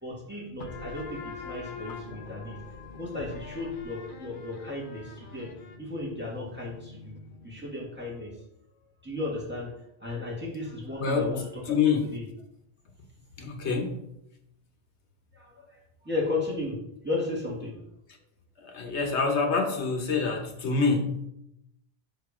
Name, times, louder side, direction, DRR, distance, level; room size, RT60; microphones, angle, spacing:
voice 1, 0.0-2.6 3.0-5.5 5.8-7.2 7.4-8.3 9.0-9.7 10.0-11.8 12.1-12.2 15.3-15.5 16.0-16.8 17.0-17.8, left 2 dB, 10° right, -4 dB, 1.7 m, -34 dB
sound 1, 0.6-7.9, left 4 dB, 55° left, 0.7 m, -44 dB
voice 2, 11.0-12.2 13.4-14.0 18.6-21.3, left 4 dB, 85° left, 4 dB, 1.2 m, -27 dB
6.7 x 3.7 x 4.9 m, 0.79 s
omnidirectional pair, 1.1 m